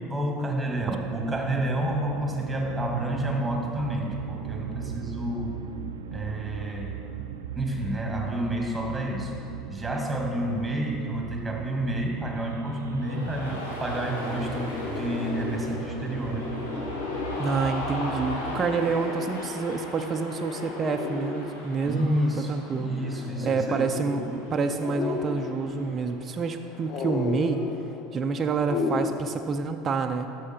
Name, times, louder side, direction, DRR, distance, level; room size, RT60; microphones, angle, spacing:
voice 1, 0.0-5.5 6.1-7.2 7.6-9.3 9.7-16.5 21.9-23.9, right 1 dB, 10° right, 0 dB, 2.0 m, -30 dB
sound 1, 0.7-18.6, right 8 dB, 80° right, 0.5 m, -38 dB
sound 2, 12.6-12.7 12.9-29.1, left 5 dB, 50° left, 0.6 m, -35 dB
Cheering, 13.0-27.8, left 1 dB, 85° left, 1.5 m, -39 dB
voice 2, 17.4-22.9 23.4-27.6 28.1-30.3, right 5 dB, 30° right, 5 dB, 0.6 m, -28 dB
12.5 x 5.7 x 4.4 m, 2.7 s
hypercardioid pair, 75°, 0 cm